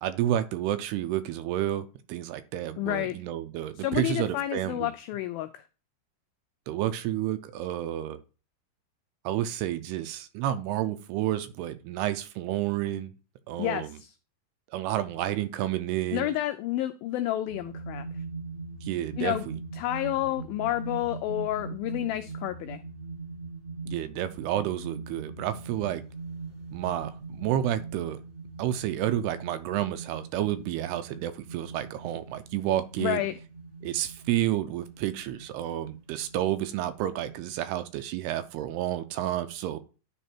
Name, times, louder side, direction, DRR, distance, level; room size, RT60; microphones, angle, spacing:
voice 1, 0.0-4.9 6.7-8.2 9.2-13.1 13.5-13.9 14.7-16.3 18.8-19.6 23.9-26.0 26.7-28.2 28.6-33.2 33.8-39.8, right 12 dB, 80° right, 11 dB, 2.7 m, -30 dB
voice 2, 2.8-3.2 3.8-5.6 13.6-14.1 16.1-18.1 19.2-19.4 19.7-22.8 33.0-33.3, left 14 dB, 90° left, 10 dB, 2.1 m, -30 dB
sound 1, 17.5-37.3, right 3 dB, 35° right, 1.0 m, -42 dB
10.5 x 4.1 x 4.4 m, 0.34 s
omnidirectional pair, 4.7 m